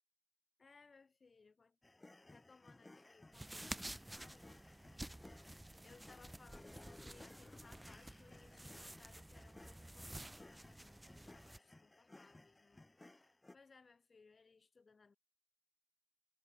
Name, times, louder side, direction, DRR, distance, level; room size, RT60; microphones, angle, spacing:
voice 1, 0.6-1.8 2.3-4.6 5.8-12.8 13.1-15.2, left 4 dB, 35° left, 6.1 m, -66 dB
sound 1, 1.8-13.6, left 2 dB, 15° left, 1.9 m, -60 dB
sound 2, 3.3-11.6, right 1 dB, 10° right, 0.6 m, -52 dB
wide cardioid pair, 135°, 0 cm